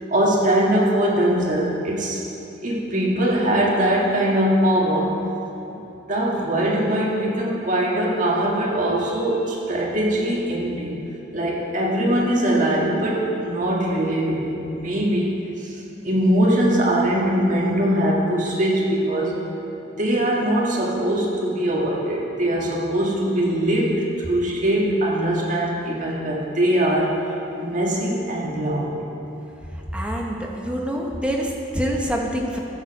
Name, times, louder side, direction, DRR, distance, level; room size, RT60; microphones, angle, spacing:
voice 1, 0.1-2.2 2.6-5.1 5.7-5.8 6.1-10.9 11.3-15.3 15.6-15.7 16.0-19.3 20.0-27.2 27.6-29.0, right 1 dB, 40° right, -4 dB, 1.8 m, -21 dB
voice 2, 29.9-32.6, equal, 5° right, -1 dB, 0.9 m, -26 dB
13.5 x 6.6 x 4.8 m, 3.0 s
head